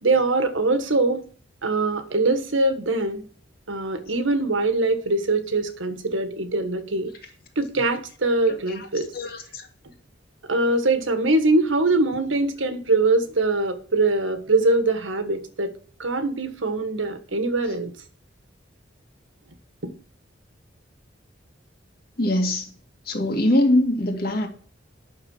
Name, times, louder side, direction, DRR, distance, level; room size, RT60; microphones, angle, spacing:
voice 1, 0.0-1.2 1.6-3.2 3.7-7.1 7.5-9.1 10.5-15.7 16.0-17.9 19.8-19.9, right 2 dB, 90° right, 1.5 m, -22 dB
voice 2, 9.1-9.7 22.2-22.7 23.1-24.5, left 1 dB, 50° left, 2.1 m, -22 dB
9.4 x 6.7 x 5.5 m
head